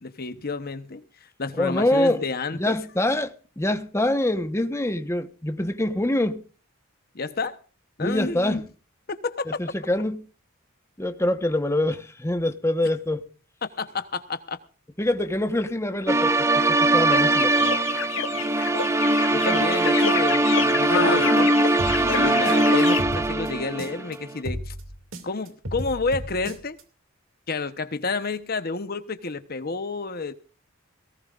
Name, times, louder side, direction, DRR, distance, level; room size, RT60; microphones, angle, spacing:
voice 1, 0.0-2.8 7.1-7.6 8.0-8.6 9.1-9.5 13.6-14.6 19.3-21.6 22.0-24.7 25.2-26.8 27.5-30.3, left 3 dB, 50° left, 1.0 m, -30 dB
voice 2, 1.6-2.2 2.5-6.4 8.0-8.7 9.6-10.2 11.0-13.3 15.0-17.8, left 1 dB, 15° left, 1.1 m, -25 dB
sound 1, 16.1-24.1, right 2 dB, 15° right, 0.6 m, -21 dB
sound 2, 17.1-23.0, left 7 dB, 65° left, 0.6 m, -29 dB
sound 3, 21.8-24.1 24.4-26.8, equal, 75° right, 2.5 m, -34 dB
18.5 x 18.5 x 2.5 m
head